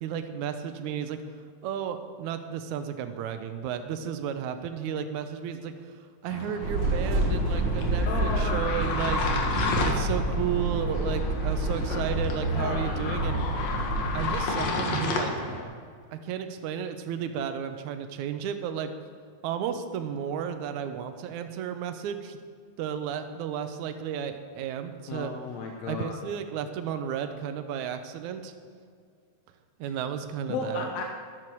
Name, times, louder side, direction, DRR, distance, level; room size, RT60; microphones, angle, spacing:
voice 1, 0.0-1.2 1.6-6.0 6.2-9.2 9.9-13.4 14.1-15.3 16.1-18.9 19.4-22.4 22.8-25.3 25.9-28.5 29.8-30.9, right 8 dB, 70° right, 8 dB, 2.1 m, -33 dB
sound 1, 6.3-15.6, left 3 dB, 80° left, 3.3 m, -32 dB
sound 2, 6.6-14.4, right 1 dB, 45° right, 1.9 m, -28 dB
voice 2, 8.0-8.6 12.5-12.9 25.1-26.2 30.5-31.0, left 3 dB, 65° left, 1 dB, 1.9 m, -33 dB
13.5 x 12.0 x 4.7 m, 2.1 s
omnidirectional pair, 3.9 m